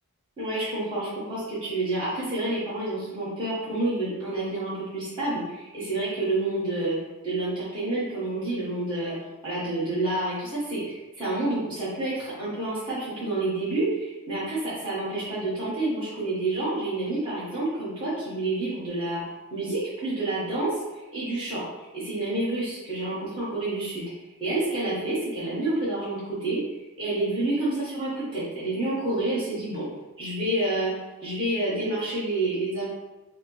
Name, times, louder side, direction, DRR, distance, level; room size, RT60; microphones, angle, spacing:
voice 1, 0.4-7.0 7.2-9.1 9.4-19.2 19.5-20.8 21.1-21.6 21.9-24.1 24.4-26.6 27.0-29.9 30.2-30.9 31.2-32.9, right 2 dB, 20° right, -11 dB, 1.2 m, -28 dB
5.8 x 2.0 x 3.1 m, 1.1 s
head